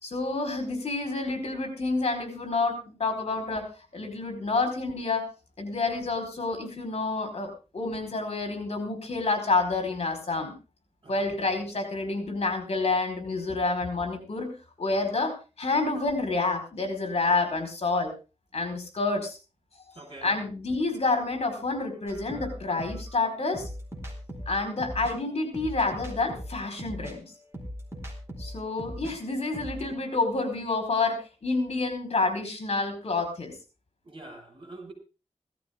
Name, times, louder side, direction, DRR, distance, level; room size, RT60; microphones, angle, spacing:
voice 1, 0.0-5.3 5.6-10.5 11.1-14.5 14.8-18.1 18.5-19.4 20.2-23.7 24.5-27.2 28.4-33.5, left 3 dB, 60° left, 5 dB, 4.8 m, -28 dB
voice 2, 11.0-11.4 20.0-20.4 34.0-34.9, right 2 dB, 50° right, 4 dB, 6.0 m, -45 dB
sound 1, 22.1-29.1 29.4-29.9, equal, 20° right, 4.4 m, -39 dB
17.0 x 13.5 x 3.8 m, 0.32 s
wide cardioid pair, 110°, 12 cm